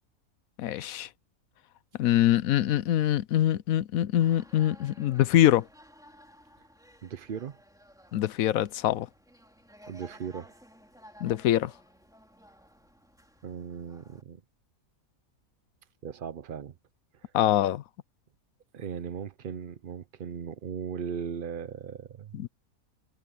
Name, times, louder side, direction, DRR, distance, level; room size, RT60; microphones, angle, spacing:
voice 1, 0.6-1.1 2.0-5.6 8.1-9.1 11.2-11.7 17.3-17.8 22.3-22.5, left 12 dB, 75° left, 1.0 m, -24 dB
sound 1, 4.2-14.2, equal, ahead, 2.8 m, -55 dB
voice 2, 7.0-7.6 9.9-10.5 13.4-14.4 16.0-16.7 17.1-17.3 18.7-22.4, right 7 dB, 50° right, 0.7 m, -38 dB
omnidirectional pair, 1.5 m